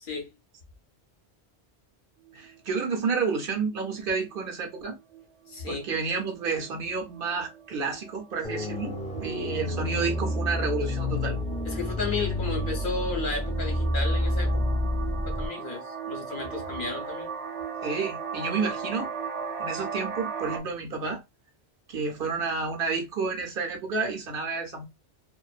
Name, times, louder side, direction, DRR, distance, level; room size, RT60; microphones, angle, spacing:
sound 1, 2.2-2.7 3.3-3.5 3.7-4.0 4.3-20.6, right 6 dB, 85° right, 0.9 m, -38 dB
voice 1, 2.3-5.0 5.7-8.9 9.2-11.4 17.8-19.1 19.6-21.2 21.9-24.8, right 4 dB, 60° right, 0.8 m, -30 dB
voice 2, 5.5-5.9 11.6-14.6 15.3-17.3, left 4 dB, 55° left, 0.8 m, -33 dB
sound 2, 8.4-15.5, left 1 dB, 10° left, 0.5 m, -29 dB
2.5 x 2.2 x 2.4 m
omnidirectional pair, 1.1 m